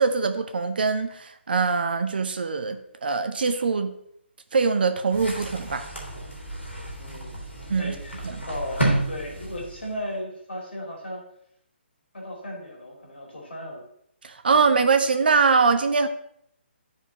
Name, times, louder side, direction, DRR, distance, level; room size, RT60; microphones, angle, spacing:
voice 1, 0.0-4.0 4.5-5.9 7.7-8.0 8.2-8.4 14.2-16.1, right 4 dB, 55° right, 8 dB, 0.6 m, -23 dB
sound 1, 5.1-10.1, right 1 dB, 80° left, 2.4 m, -31 dB
voice 2, 7.0-7.4 7.8-11.2 12.1-13.8, left 1 dB, 65° left, -2 dB, 2.7 m, -36 dB
10.5 x 4.8 x 2.8 m, 0.72 s
figure-of-eight pair, 140°, 6 cm